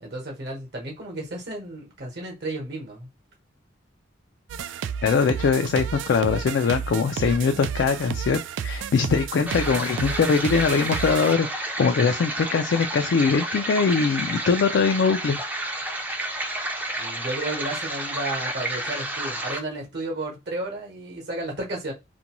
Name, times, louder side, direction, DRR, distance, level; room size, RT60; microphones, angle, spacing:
voice 1, 0.0-3.1 17.0-21.9, right 2 dB, 60° right, 0.9 m, -33 dB
sound 1, 4.5-11.4, right 7 dB, 85° right, 0.3 m, -32 dB
voice 2, 5.0-11.5 11.8-15.7, left 5 dB, 70° left, 0.3 m, -22 dB
sound 2, 9.5-19.6, right 1 dB, 10° right, 0.4 m, -30 dB
2.5 x 2.2 x 2.9 m
head